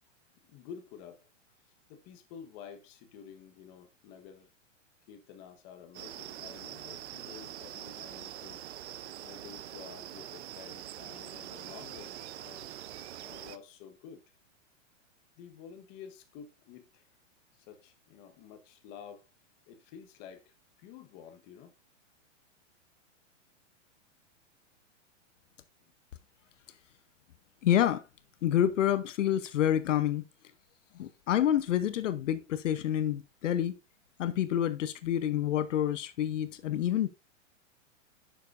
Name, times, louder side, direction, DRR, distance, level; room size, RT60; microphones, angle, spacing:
voice 1, 0.5-1.3 1.9-4.5 5.1-8.7 9.2-12.7 13.2-14.2 15.4-17.1 17.5-19.3 19.7-21.7 25.8-25.9, left 7 dB, 25° left, 1.3 m, -50 dB
sound 1, 5.9-13.6, right 12 dB, 60° right, 0.7 m, -44 dB
voice 2, 27.6-28.1 28.4-30.2 30.9-33.8 34.2-37.1, left 11 dB, 75° left, 0.9 m, -28 dB
10.5 x 7.0 x 2.6 m
supercardioid pair, 165°, 38 cm